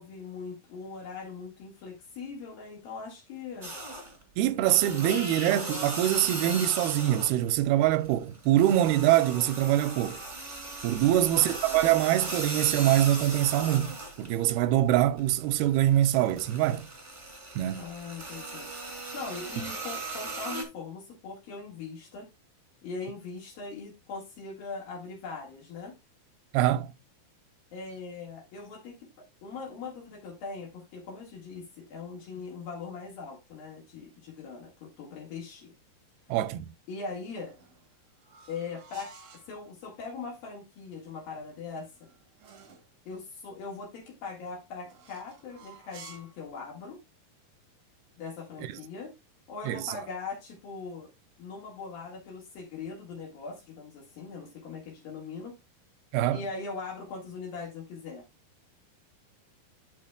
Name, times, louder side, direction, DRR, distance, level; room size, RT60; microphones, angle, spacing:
voice 1, 0.0-3.7 11.1-11.4 17.8-18.7 19.1-22.3 22.8-26.0 27.7-35.7 36.9-37.5 38.5-39.1 39.5-42.1 43.1-47.0 48.2-49.1 49.5-51.1 51.4-55.5 56.3-58.3, left 4 dB, 70° left, 3.4 m, -40 dB
sound 1, 3.6-4.2 4.6-7.5 7.8-14.6 14.9-20.6, right 2 dB, 20° right, 1.5 m, -38 dB
voice 2, 4.4-10.2 10.8-16.9 17.6-17.8 26.5-26.9 36.3-36.7 49.7-50.0 56.1-56.4, right 13 dB, 85° right, 2.5 m, -24 dB
sound 2, 37.3-39.5 41.5-42.9 44.8-46.4, right 4 dB, 60° right, 1.4 m, -52 dB
12.0 x 5.6 x 2.3 m
omnidirectional pair, 4.4 m